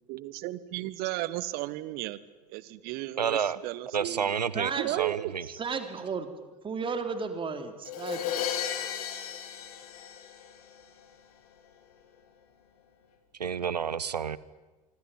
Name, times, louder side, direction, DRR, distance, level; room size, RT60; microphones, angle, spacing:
voice 1, 0.1-2.2 2.5-4.4 4.8-5.3, right 17 dB, 50° right, 17 dB, 1.6 m, -34 dB
voice 2, 3.2-3.6 3.9-5.4 13.4-14.4, right 7 dB, 80° right, 19 dB, 1.1 m, -30 dB
voice 3, 4.5-4.9 5.6-8.5, right 5 dB, 25° right, 8 dB, 3.7 m, -34 dB
Crash cymbal, 7.9-10.8, left 9 dB, 65° left, 3.8 m, -34 dB
25.5 x 25.0 x 9.3 m, 1.2 s
figure-of-eight pair, 80°, 21 cm